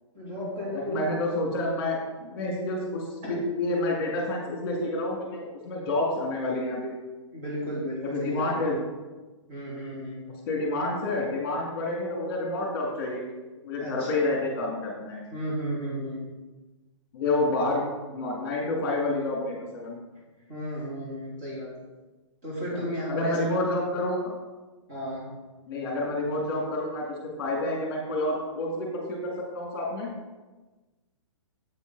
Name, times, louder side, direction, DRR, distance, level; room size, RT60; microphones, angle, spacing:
voice 1, 0.1-1.3 2.2-2.3 3.2-3.4 7.3-8.7 9.5-10.3 13.8-14.2 15.3-16.3 20.5-21.7 22.4-23.4 24.9-25.3, equal, 35° right, -8 dB, 2.9 m, -34 dB
voice 2, 0.9-2.0 2.3-6.9 8.0-8.8 10.5-13.2 13.6-15.3 17.1-17.9 18.1-20.0 23.1-24.2 25.7-27.0 27.4-30.1, left 2 dB, 30° left, -2 dB, 1.8 m, -28 dB
8.1 x 6.9 x 3.9 m, 1.2 s
hypercardioid pair, 175°, 16 cm